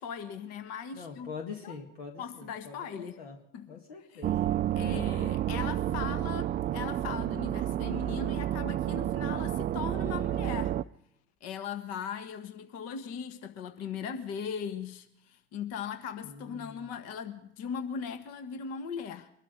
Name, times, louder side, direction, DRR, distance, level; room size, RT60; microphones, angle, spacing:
voice 1, 0.0-1.3 1.6-1.8 2.2-3.1 3.5-3.8 4.1-4.3 4.7-10.8 11.4-19.3, left 7 dB, 55° left, 1.5 m, -39 dB
voice 2, 0.9-3.4 3.7-4.4 16.2-17.0, left 5 dB, 75° left, 2.0 m, -44 dB
sound 1, 4.2-10.8, right 12 dB, 30° right, 0.5 m, -30 dB
23.5 x 12.5 x 3.9 m
hypercardioid pair, 75°, 31 cm